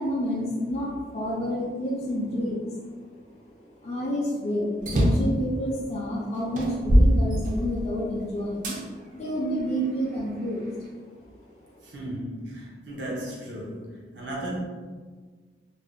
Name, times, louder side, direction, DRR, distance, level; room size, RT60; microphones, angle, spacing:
voice 1, 0.0-2.8 3.6-11.0 11.6-11.8, equal, 35° left, -5 dB, 0.4 m, -29 dB
sound 1, 4.8-5.4 6.0-6.1 6.6-8.0 8.6-8.8 9.5-10.6, equal, 45° right, 0.5 m, -22 dB
voice 2, 11.8-14.6, right 1 dB, 80° right, -4 dB, 0.7 m, -35 dB
2.5 x 2.0 x 3.5 m, 1.5 s
head